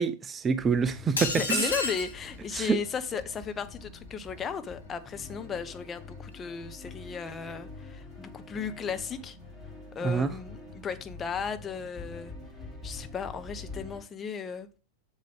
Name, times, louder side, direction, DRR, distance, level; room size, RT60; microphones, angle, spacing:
voice 1, 0.0-1.7 2.5-2.8 10.0-10.3, right 5 dB, 20° right, 0.5 m, -26 dB
sound 1, 0.6-14.0, left 3 dB, 5° left, 3.6 m, -46 dB
sound 2, 1.2-2.2, left 3 dB, 75° left, 2.3 m, -30 dB
voice 2, 1.3-9.4 9.9-12.3 12.8-14.8, left 6 dB, 20° left, 0.9 m, -35 dB
7.6 x 7.4 x 3.4 m
figure-of-eight pair, 90°, 0 cm